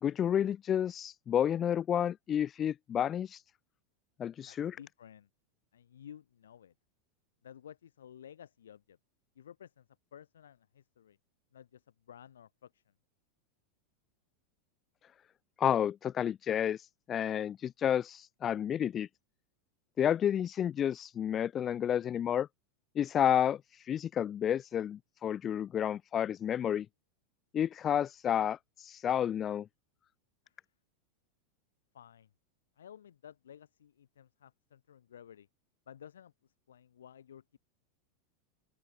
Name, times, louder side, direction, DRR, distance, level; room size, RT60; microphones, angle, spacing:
voice 1, 0.0-3.4 4.2-4.8 15.6-19.1 20.0-22.5 22.9-26.9 27.5-29.7, left 9 dB, 30° left, 0.9 m, -31 dB
voice 2, 4.4-5.3 5.7-6.7 7.4-9.0 9.3-9.9 10.1-11.2 11.5-12.8 31.9-32.3 32.8-35.5 35.9-37.6, left 9 dB, 75° left, 4.6 m, -54 dB
open air
figure-of-eight pair, 90°, 0 cm